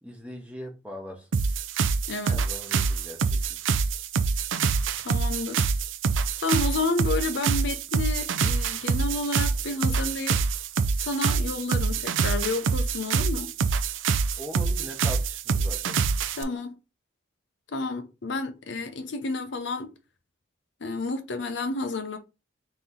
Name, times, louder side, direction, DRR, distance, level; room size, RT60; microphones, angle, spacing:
voice 1, 0.0-1.3 2.3-3.6 14.4-16.0, equal, 5° right, 0.9 m, -40 dB
sound 1, 1.3-16.4, right 5 dB, 75° right, 0.4 m, -26 dB
voice 2, 2.1-2.4 5.0-5.7 6.4-10.4 11.0-13.5 16.3-16.7 17.7-19.9 20.8-22.2, left 3 dB, 65° left, 0.6 m, -30 dB
3.9 x 2.9 x 3.7 m
head